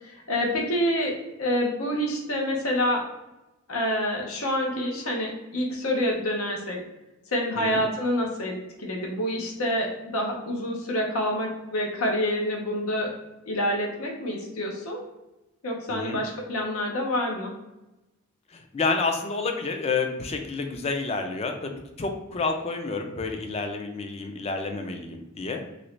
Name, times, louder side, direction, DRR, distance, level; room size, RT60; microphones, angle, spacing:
voice 1, 0.0-3.0 3.7-6.8 7.3-13.1 13.5-15.0 15.6-17.5, equal, 80° left, 0 dB, 0.8 m, -27 dB
voice 2, 15.9-16.2 18.5-25.6, left 4 dB, 30° left, 5 dB, 0.4 m, -29 dB
3.0 x 2.6 x 3.2 m, 0.99 s
head